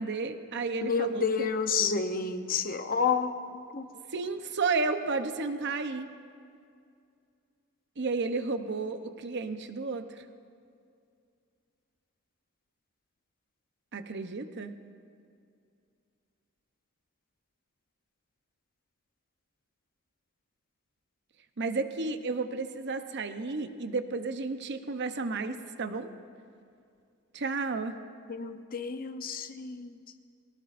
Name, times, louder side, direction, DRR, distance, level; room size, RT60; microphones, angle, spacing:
voice 1, 0.0-1.5 4.1-6.1 8.0-10.0 13.9-14.7 21.6-26.1 27.3-27.9, right 4 dB, 55° right, 8 dB, 0.8 m, -32 dB
voice 2, 0.8-3.9 28.3-30.0, left 5 dB, 40° left, 8 dB, 0.7 m, -30 dB
23.0 x 18.5 x 2.6 m, 2.4 s
head